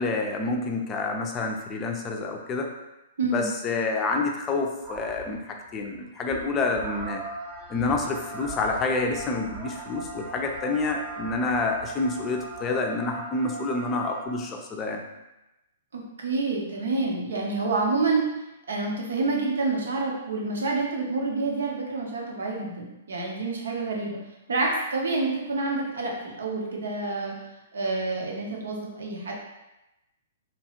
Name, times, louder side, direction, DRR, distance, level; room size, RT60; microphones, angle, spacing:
voice 1, 0.0-2.7 3.3-7.2 7.7-15.0, left 3 dB, 25° left, 2 dB, 0.4 m, -28 dB
voice 2, 3.2-3.5 15.9-18.2 18.7-24.2 24.5-27.3 27.7-29.3, right 3 dB, 80° right, -1 dB, 0.7 m, -28 dB
sound 1, 4.8-5.4 5.8-6.0 6.3-14.3, right 3 dB, 25° right, 0.5 m, -39 dB
2.9 x 2.3 x 2.9 m, 0.96 s
hypercardioid pair, 125°, 0 cm